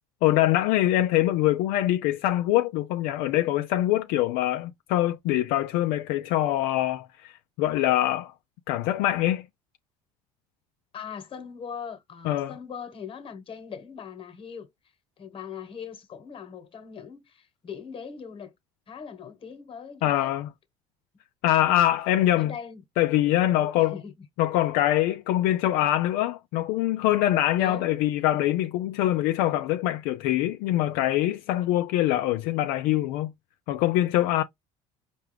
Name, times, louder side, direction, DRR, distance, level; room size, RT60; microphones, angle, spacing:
voice 1, 0.2-8.3 8.7-9.4 12.2-12.5 20.0-20.5 21.4-22.5 23.0-24.0 24.4-33.3 33.7-34.4, left 14 dB, 75° left, 0.4 m, -24 dB
voice 2, 10.9-14.7 15.2-18.5 18.9-20.3 21.6-21.9 22.4-22.8 23.7-24.1 27.5-27.9, left 7 dB, 40° left, 1.3 m, -40 dB
4.6 x 2.4 x 3.3 m
supercardioid pair, 100°, 15 cm